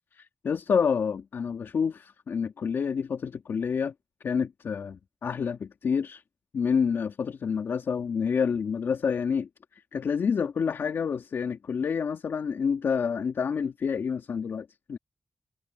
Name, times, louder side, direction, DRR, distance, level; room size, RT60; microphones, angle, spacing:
voice 1, 0.1-3.9 4.2-6.2 6.5-15.0, left 6 dB, 75° left, 2.7 m, -28 dB
cardioid pair, 60°, 4 cm